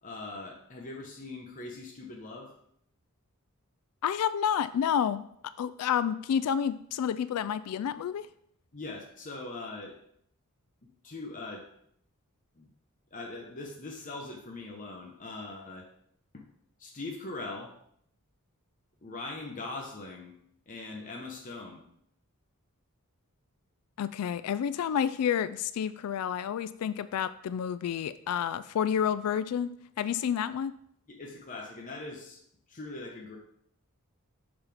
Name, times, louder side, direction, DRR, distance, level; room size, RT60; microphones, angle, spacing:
voice 1, 0.0-2.5 8.7-10.0 11.0-11.7 12.6-12.7 13.1-15.9 16.3-16.4 16.8-17.7 19.0-20.3 20.7-21.8 31.1-32.4 32.7-33.4, left 2 dB, 35° left, 0 dB, 0.9 m, -41 dB
voice 2, 4.0-5.3 5.6-8.3 24.0-30.7, left 8 dB, 85° left, 15 dB, 0.3 m, -29 dB
6.9 x 5.6 x 3.4 m, 0.69 s
head